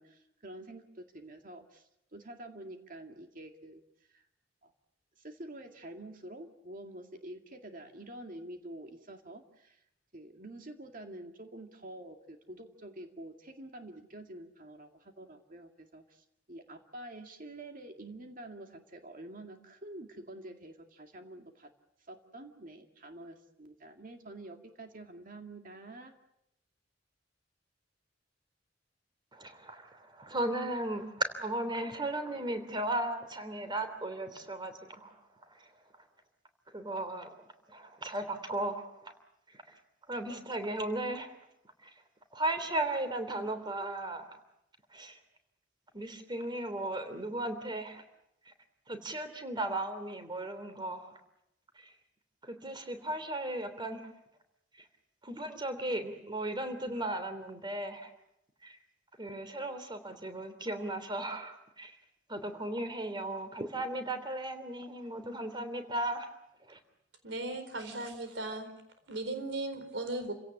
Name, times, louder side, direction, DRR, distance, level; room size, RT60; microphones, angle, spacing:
voice 1, 0.0-3.8 4.1-4.3 4.6-4.7 5.2-9.8 10.1-21.7 22.1-26.1, right 1 dB, 50° right, 5 dB, 2.2 m, -48 dB
voice 2, 29.3-36.1 36.7-37.4 37.7-39.2 39.5-44.4 44.9-45.2 45.9-48.0 48.4-48.5 48.8-51.2 51.7-52.0 52.4-54.2 54.7-54.9 55.2-58.1 58.6-58.8 59.2-66.8, right 1 dB, 25° right, 9 dB, 3.2 m, -36 dB
voice 3, 67.2-68.7 69.1-70.3, right 2 dB, 80° right, 8 dB, 4.3 m, -37 dB
29.5 x 17.0 x 8.6 m, 0.82 s
head